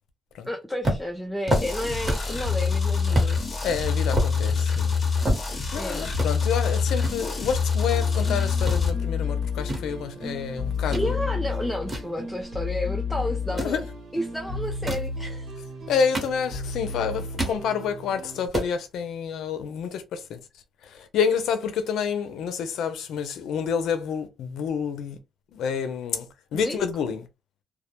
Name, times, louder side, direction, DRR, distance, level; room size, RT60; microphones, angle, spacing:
voice 1, 0.4-3.4 5.8-6.1 10.9-13.8 14.1-15.6 26.5-26.9, equal, 5° left, 0.4 m, -31 dB
sound 1, 0.8-2.4 2.7-2.8 3.1-3.3 3.8-5.8 6.1-6.3 7.0-8.2 8.5-8.8 9.4-11.1 11.5-12.8 13.4-13.8 14.6-15.1 15.8-16.8 17.1-17.6 18.0-18.1 18.3-18.7, right 1 dB, 25° right, 1.2 m, -29 dB
sound 2, 1.5-8.9, left 5 dB, 35° left, 0.8 m, -25 dB
voice 2, 3.6-4.9 5.7-11.1 13.5-13.8 15.9-20.4 20.8-25.2 25.5-27.2, left 7 dB, 80° left, 0.5 m, -28 dB
sound 3, 7.9-18.5, left 5 dB, 75° right, 1.1 m, -32 dB
2.2 x 2.1 x 2.9 m
cardioid pair, 90°, 0 cm